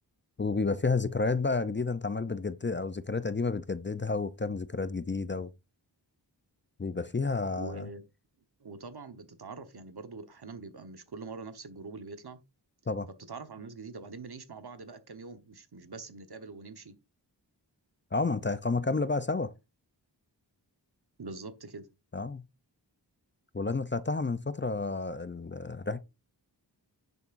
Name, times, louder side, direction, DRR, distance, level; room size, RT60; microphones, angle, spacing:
voice 1, 0.4-5.5 6.8-7.8 12.9-13.1 18.1-19.5 22.1-22.4 23.5-26.0, left 3 dB, 25° left, 0.5 m, -30 dB
voice 2, 7.5-8.0 8.6-12.4 13.3-16.9 21.2-21.9, right 4 dB, 65° right, 1.2 m, -44 dB
10.5 x 6.9 x 2.6 m
wide cardioid pair, 70°, 42 cm